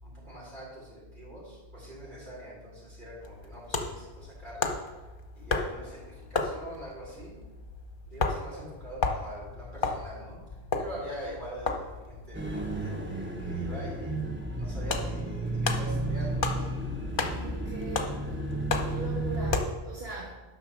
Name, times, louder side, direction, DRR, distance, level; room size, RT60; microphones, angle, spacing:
voice 1, 0.0-4.8 5.4-7.4 8.1-10.4 10.8-14.2 14.6-16.7, right 1 dB, 50° right, -5 dB, 4.3 m, -44 dB
sound 1, 3.2-19.6, left 3 dB, 55° left, 1.1 m, -35 dB
sound 2, 12.3-19.6, right 1 dB, 10° right, 1.1 m, -32 dB
voice 2, 17.3-18.2 18.9-20.3, right 3 dB, 70° right, -5 dB, 1.9 m, -39 dB
11.0 x 5.9 x 6.2 m, 1.1 s
omnidirectional pair, 1.1 m